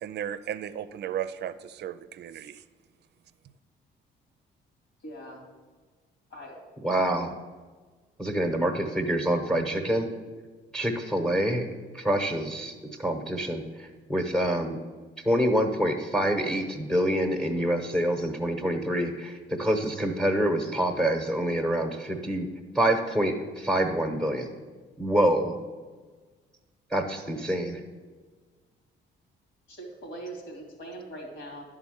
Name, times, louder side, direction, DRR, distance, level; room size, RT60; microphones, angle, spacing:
voice 1, 0.0-2.6, right 10 dB, 60° right, 14 dB, 0.5 m, -35 dB
voice 2, 5.0-5.4 6.3-6.6 29.7-31.6, right 1 dB, 80° left, 0 dB, 2.6 m, -41 dB
voice 3, 6.8-7.3 8.2-10.1 10.7-11.7 11.9-14.8 15.2-22.5 22.7-24.5 25.0-25.6 26.9-27.8, right 1 dB, 5° left, 4 dB, 1.0 m, -26 dB
10.5 x 3.8 x 6.4 m, 1.4 s
cardioid pair, 90°, 20 cm